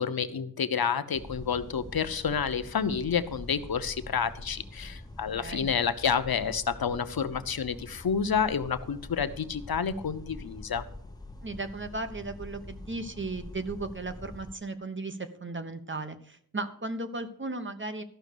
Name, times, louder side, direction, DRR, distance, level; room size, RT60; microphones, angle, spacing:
voice 1, 0.0-10.8, left 6 dB, 85° left, 11 dB, 0.8 m, -29 dB
AC Unit, 1.1-14.5, left 2 dB, 10° left, 1.4 m, -45 dB
voice 2, 5.4-5.7 11.4-18.0, right 2 dB, 35° right, 8 dB, 1.1 m, -36 dB
13.5 x 6.1 x 6.7 m, 0.63 s
wide cardioid pair, 70°, 35 cm